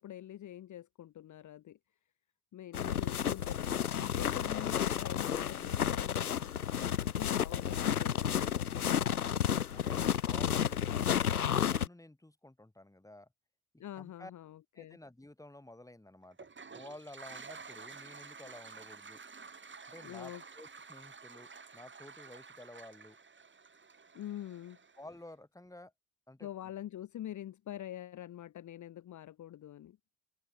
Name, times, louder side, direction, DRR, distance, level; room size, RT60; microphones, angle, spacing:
voice 1, 0.0-1.8 2.5-6.5 7.2-9.1 13.8-15.0 20.0-20.4 24.1-24.8 26.4-30.0, left 12 dB, 40° left, 1.5 m, -45 dB
sound 1, 2.7-11.9, left 9 dB, 85° left, 0.9 m, -31 dB
voice 2, 9.7-13.3 13.9-14.3 14.7-16.5 16.7-19.2 19.9-23.2 25.0-25.9 26.3-26.5, left 1 dB, 5° left, 4.6 m, -52 dB
Toilet flush, 16.3-25.2, right 5 dB, 25° right, 4.7 m, -51 dB
open air
figure-of-eight pair, 50°, 43 cm